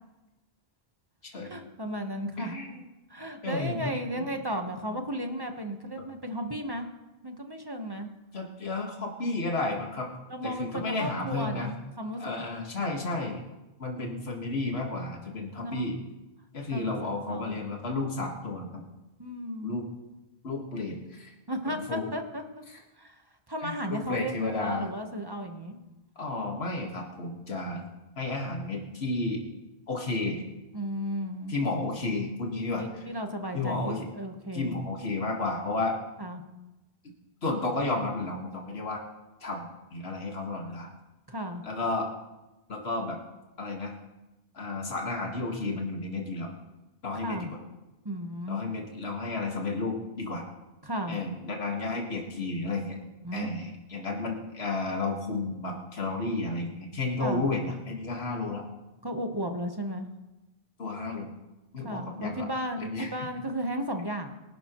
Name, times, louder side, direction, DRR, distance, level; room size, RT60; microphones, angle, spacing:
voice 1, 1.4-2.6 3.1-6.9 7.2-8.1 10.3-12.3 15.6-15.9 16.7-17.0 17.3-17.6 19.2-19.8 21.5-22.6 23.0-23.2 23.5-25.8 30.7-31.6 32.8-34.8 36.2-36.4 41.3-41.6 47.2-47.5 48.0-48.6 50.8-51.2 53.2-53.7 57.2-57.5 59.0-60.1 61.8-64.3, equal, 25° right, 5 dB, 1.2 m, -34 dB
voice 2, 2.4-2.8 3.4-4.3 6.0-6.1 8.3-10.1 10.4-11.7 12.2-13.4 13.8-16.0 16.5-18.8 19.6-19.8 20.4-21.3 21.7-22.1 23.6-24.9 26.2-27.8 28.2-29.4 29.9-30.4 31.5-33.0 33.5-34.1 34.5-36.0 37.4-39.0 39.4-40.9 41.6-42.1 42.7-43.2 43.6-44.0 44.5-46.5 47.0-47.5 48.5-50.4 51.1-53.0 53.3-58.7 60.8-61.3 61.7-62.5 62.8-63.3, left 2 dB, 75° left, 0 dB, 2.0 m, -32 dB
23.5 x 12.0 x 3.1 m, 1.0 s
omnidirectional pair, 1.1 m